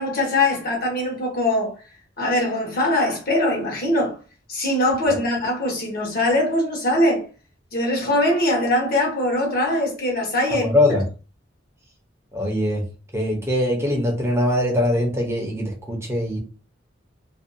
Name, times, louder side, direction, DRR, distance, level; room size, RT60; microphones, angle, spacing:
voice 1, 0.0-1.7 2.2-4.2 4.5-7.2 7.7-10.8, left 1 dB, 50° left, 0.9 m, -22 dB
voice 2, 10.6-11.0 12.3-12.8 13.1-16.4, left 1 dB, 15° right, 0.7 m, -22 dB
2.6 x 2.2 x 2.5 m
head